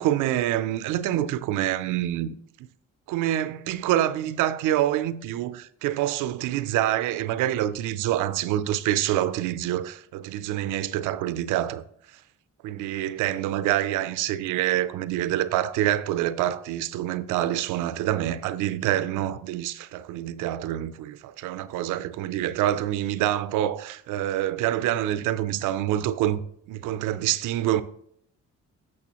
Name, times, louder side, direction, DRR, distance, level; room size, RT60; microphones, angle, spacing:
voice 1, 0.0-2.7 3.1-11.8 12.6-26.4 26.7-27.8, right 12 dB, 90° right, 0.5 m, -26 dB
8.5 x 6.3 x 2.9 m
cardioid pair, 90°, 30 cm